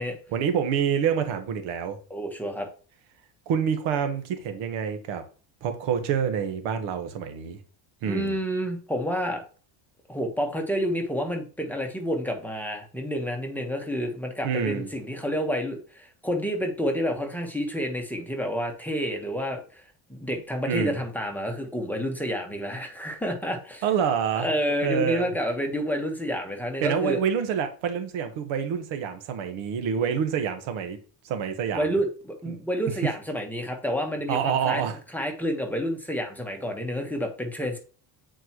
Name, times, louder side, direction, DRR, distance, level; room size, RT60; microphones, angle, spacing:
voice 1, 0.3-2.0 3.5-5.2 5.6-7.6 8.0-8.4 14.4-14.9 20.7-21.0 23.8-24.5 24.8-25.3 26.8-31.0 31.2-32.0 32.5-32.6 34.3-35.0, right 7 dB, 80° right, 1.3 m, -27 dB
voice 2, 2.1-2.7 8.0-9.4 10.1-19.8 20.1-23.8 24.3-27.2 31.7-34.8 35.1-37.8, equal, 5° left, 1.2 m, -29 dB
7.9 x 4.5 x 3.0 m
cardioid pair, 130°, 47 cm